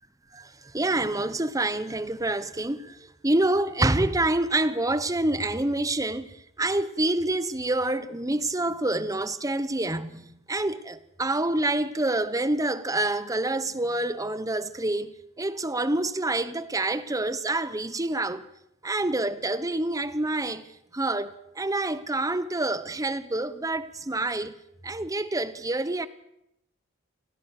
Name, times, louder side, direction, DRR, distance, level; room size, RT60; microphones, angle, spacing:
voice 1, 0.7-3.0 3.2-10.2 10.5-15.1 15.4-18.4 18.8-20.6 20.9-24.5 24.8-26.1, right 2 dB, 15° right, 1.0 m, -27 dB
27.5 x 18.0 x 6.6 m
head